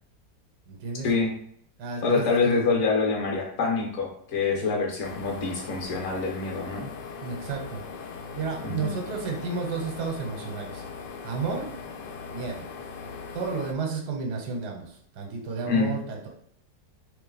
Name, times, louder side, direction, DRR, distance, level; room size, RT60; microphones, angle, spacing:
voice 1, 0.7-1.1 1.8-2.5 4.6-4.7 7.2-10.8 11.2-11.7 12.3-12.6 13.3-16.3, right 4 dB, 70° right, 1 dB, 1.3 m, -32 dB
voice 2, 2.0-6.9 8.6-8.9 15.6-15.9, left 4 dB, 50° left, 0 dB, 1.2 m, -26 dB
sound 1, 5.0-13.7, left 5 dB, 90° left, 1.2 m, -40 dB
3.1 x 3.1 x 3.9 m, 0.66 s
omnidirectional pair, 1.8 m